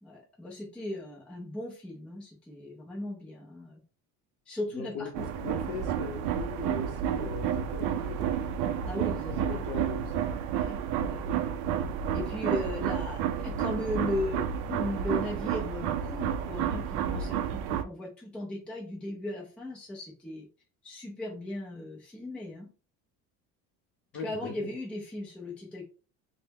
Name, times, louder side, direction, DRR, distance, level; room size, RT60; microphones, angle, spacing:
voice 1, 0.0-3.8 4.5-5.1 8.8-9.6 10.6-11.4 12.1-14.4 14.7-20.5 20.8-22.7 24.2-25.8, left 1 dB, 5° left, -4 dB, 0.5 m, -37 dB
voice 2, 4.8-8.3 9.3-10.2 24.1-24.7, left 5 dB, 45° left, 3 dB, 0.7 m, -39 dB
sound 1, 5.1-17.8, right 9 dB, 65° right, 0.5 m, -31 dB
3.1 x 2.2 x 3.4 m, 0.36 s
cardioid pair, 180°, 34 cm